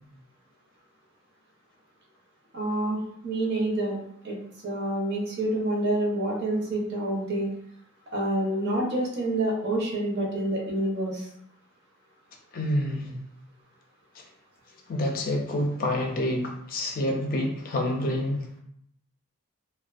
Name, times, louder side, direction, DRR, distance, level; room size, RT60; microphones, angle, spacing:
voice 1, 2.5-4.0 4.2-4.4 4.6-7.5 8.1-11.2, right 1 dB, 50° right, -2 dB, 0.6 m, -27 dB
voice 2, 12.5-13.1 14.9-18.4, left 1 dB, 45° left, 1 dB, 0.4 m, -27 dB
2.4 x 2.2 x 2.4 m, 0.70 s
head